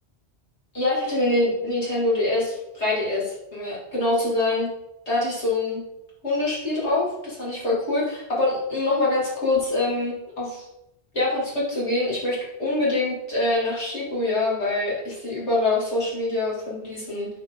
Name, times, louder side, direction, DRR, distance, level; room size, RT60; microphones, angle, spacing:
voice 1, 0.7-4.7 5.1-5.8 6.2-10.7 11.1-17.3, left 2 dB, 80° left, -7 dB, 3.1 m, -25 dB
8.7 x 4.9 x 3.9 m, 0.87 s
omnidirectional pair, 1.1 m